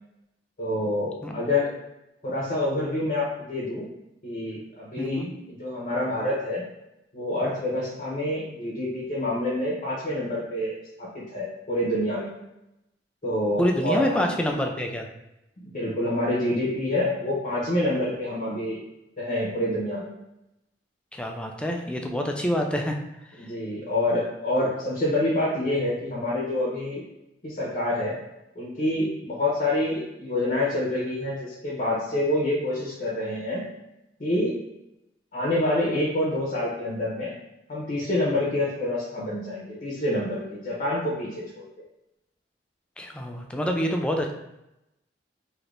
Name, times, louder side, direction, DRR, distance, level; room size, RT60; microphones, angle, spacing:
voice 1, 0.6-1.7 2.2-3.9 4.2-6.6 7.1-10.7 11.0-12.3 13.2-14.2 15.6-18.8 19.2-20.1 23.4-27.0 27.4-28.2 28.6-33.6 34.2-34.5 35.3-37.3 37.7-41.6, left 1 dB, 45° left, -5 dB, 0.8 m, -27 dB
voice 2, 5.0-5.3 13.6-15.1 21.1-23.0 43.0-44.3, equal, 5° left, 2 dB, 0.3 m, -27 dB
3.2 x 2.8 x 2.5 m, 0.90 s
head